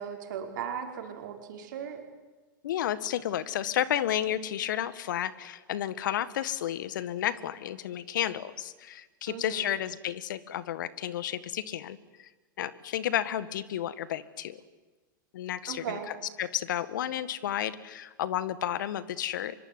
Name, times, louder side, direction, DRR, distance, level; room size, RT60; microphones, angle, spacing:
voice 1, 0.0-2.0 9.3-9.7 15.7-16.1, right 8 dB, 65° right, 4 dB, 5.1 m, -37 dB
voice 2, 2.6-12.3 12.6-14.6 15.3-16.0 16.4-19.5, left 11 dB, 70° left, 16 dB, 1.6 m, -32 dB
25.0 x 23.0 x 9.6 m, 1.2 s
hypercardioid pair, 95°, 11 cm